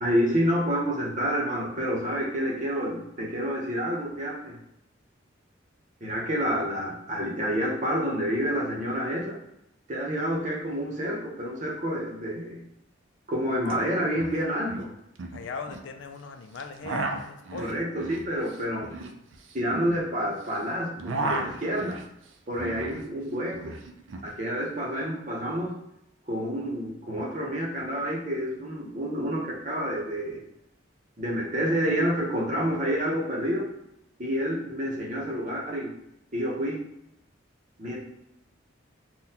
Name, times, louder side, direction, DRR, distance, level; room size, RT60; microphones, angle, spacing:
voice 1, 0.0-4.5 6.0-9.4 9.9-12.6 13.3-14.9 17.6-19.1 19.5-22.0 22.5-23.8 24.2-25.8 26.3-30.4 31.2-33.7 34.2-35.9 36.3-36.8 37.8-38.0, equal, 40° right, -3 dB, 0.8 m, -28 dB
sound 1, 13.6-13.7 14.0-14.4 14.7-15.9 16.5-20.5 20.8-23.1 23.3-24.3, right 2 dB, 75° right, 0.4 m, -34 dB
voice 2, 15.3-17.7, left 5 dB, 70° left, 6 dB, 0.3 m, -39 dB
3.8 x 2.2 x 2.8 m, 0.80 s
head